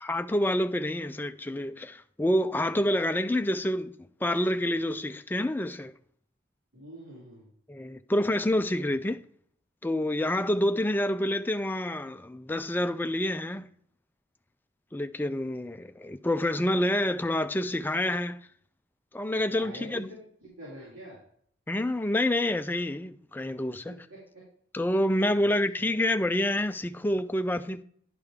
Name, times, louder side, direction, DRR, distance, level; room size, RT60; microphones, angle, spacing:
voice 1, 0.0-3.9 4.2-5.9 7.7-9.2 9.8-13.7 14.9-18.4 19.1-20.1 21.7-23.9 24.7-27.8, left 1 dB, 10° left, 0.3 m, -28 dB
voice 2, 6.7-7.5 19.5-21.2 23.9-24.4, right 1 dB, 85° right, 3.1 m, -46 dB
10.5 x 5.0 x 3.6 m
head